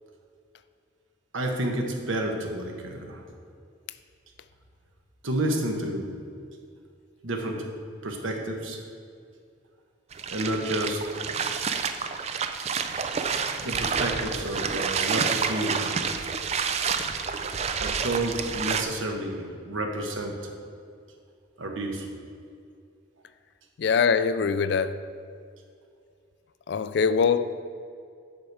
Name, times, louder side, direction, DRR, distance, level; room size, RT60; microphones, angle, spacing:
voice 1, 1.3-3.2 5.2-6.1 7.2-7.7 8.0-8.8 10.3-11.6 13.4-16.1 17.8-20.5 21.6-22.1, right 1 dB, 80° right, 2 dB, 1.1 m, -30 dB
sound 1, 10.1-18.8, right 6 dB, 30° right, 0.3 m, -29 dB
voice 2, 23.8-25.0 26.7-27.5, left 6 dB, 55° left, 13 dB, 0.3 m, -23 dB
8.0 x 6.5 x 4.7 m, 2.4 s
head